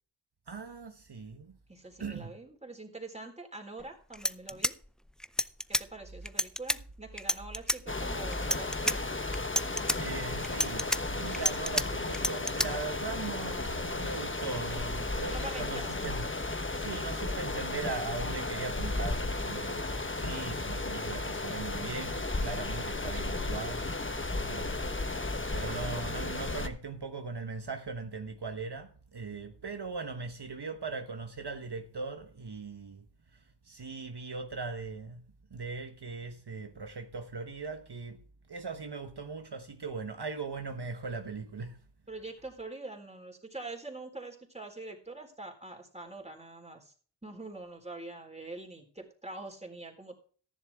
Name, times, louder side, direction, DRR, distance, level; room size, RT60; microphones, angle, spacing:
voice 1, 0.5-1.6 2.0-2.3 10.0-16.3 16.8-19.9 20.2-23.9 24.5-25.0 25.5-33.0 33.3-35.2 35.5-38.2 38.5-41.8, right 4 dB, 60° right, 1.2 m, -39 dB
voice 2, 1.7-4.8 5.7-9.1 15.3-16.1 42.1-46.9 47.2-50.1, right 2 dB, 15° right, 3.9 m, -44 dB
sound 1, 3.8-3.9 4.1-5.8 6.3-6.8 7.2-7.8 8.3-9.0 9.3-10.0 10.4-11.8 12.1-12.7, equal, ahead, 0.5 m, -29 dB
sound 2, 7.9-26.7, left 2 dB, 25° left, 1.3 m, -34 dB
14.0 x 10.5 x 3.6 m
wide cardioid pair, 60°, 44 cm